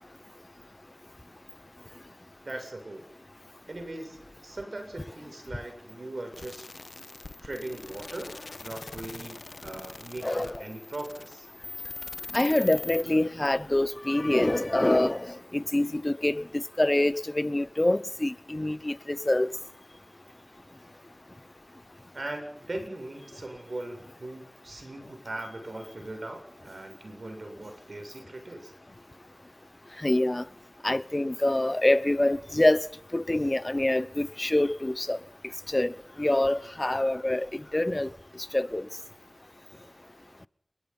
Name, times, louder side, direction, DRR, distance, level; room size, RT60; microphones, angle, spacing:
voice 1, 2.4-3.1 3.7-6.7 7.4-11.5 22.1-28.7, right 2 dB, 75° right, 7.3 m, -40 dB
sound 1, 6.3-13.0, left 3 dB, 80° left, 1.4 m, -42 dB
voice 2, 10.2-10.6 12.3-19.5 30.0-30.4 30.8-32.8 33.1-35.2 35.7-38.1 38.5-38.9, left 1 dB, 35° left, 0.9 m, -25 dB
29.5 x 21.5 x 5.7 m
wide cardioid pair, 45°, 0 cm